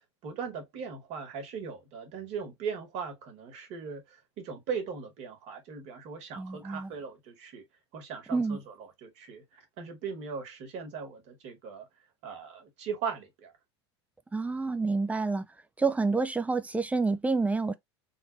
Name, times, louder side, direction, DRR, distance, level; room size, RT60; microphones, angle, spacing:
voice 1, 0.0-7.6 7.9-11.9 12.2-13.5, right 6 dB, 55° right, 1.9 m, -39 dB
voice 2, 6.4-6.9 8.3-8.6 14.3-15.5 15.8-17.7, right 3 dB, 10° right, 0.5 m, -28 dB
3.9 x 2.6 x 3.1 m
hypercardioid pair, 85°, 14 cm